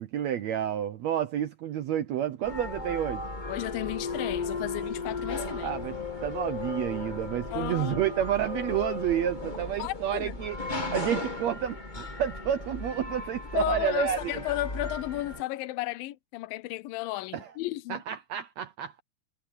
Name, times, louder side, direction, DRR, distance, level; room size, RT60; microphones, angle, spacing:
voice 1, 0.0-3.2 5.6-6.0 6.2-14.3 17.3-17.5 17.9-19.0, right 10 dB, 75° right, 1.6 m, -30 dB
sound 1, 2.4-15.4, left 3 dB, 20° left, 1.3 m, -36 dB
voice 2, 3.5-5.8 7.5-8.0 9.8-10.4 13.5-18.0, left 17 dB, 85° left, 2.4 m, -33 dB
omnidirectional pair, 4.0 m